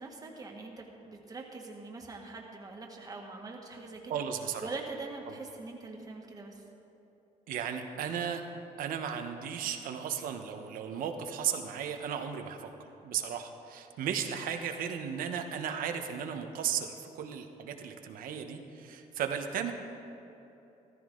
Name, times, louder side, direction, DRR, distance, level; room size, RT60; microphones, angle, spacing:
voice 1, 0.0-4.2 4.6-6.6, right 3 dB, 25° right, 0 dB, 1.7 m, -43 dB
voice 2, 4.1-4.7 5.3-5.4 7.5-8.4 8.8-19.7, right 8 dB, 80° right, 6 dB, 1.0 m, -35 dB
14.0 x 14.0 x 3.8 m, 2.9 s
cardioid pair, 115°, 14 cm